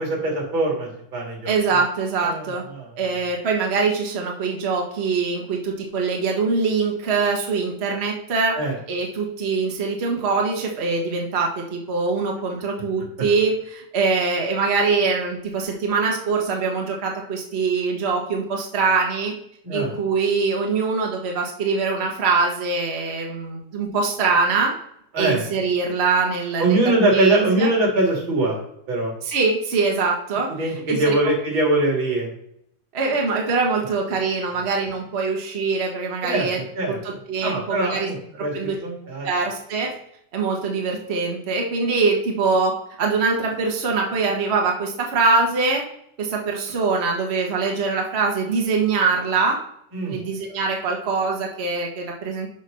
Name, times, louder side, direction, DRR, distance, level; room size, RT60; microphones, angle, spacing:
voice 1, 0.0-1.5 2.2-3.2 8.5-8.7 19.6-19.9 25.1-25.4 26.6-28.6 28.9-29.1 30.5-32.3 36.2-37.0 37.4-39.3 49.9-50.2, right 2 dB, 40° right, -2 dB, 3.2 m, -22 dB
voice 2, 1.5-2.6 3.0-8.6 8.9-19.3 19.7-24.7 25.2-26.8 27.1-27.7 29.3-30.5 30.9-31.1 32.9-36.6 36.9-38.1 38.5-38.8 39.2-39.9 40.3-42.7 43.0-45.8 46.2-49.6 50.0-52.5, right 4 dB, 80° right, 0 dB, 0.5 m, -23 dB
6.6 x 5.1 x 5.6 m, 0.73 s
omnidirectional pair, 3.4 m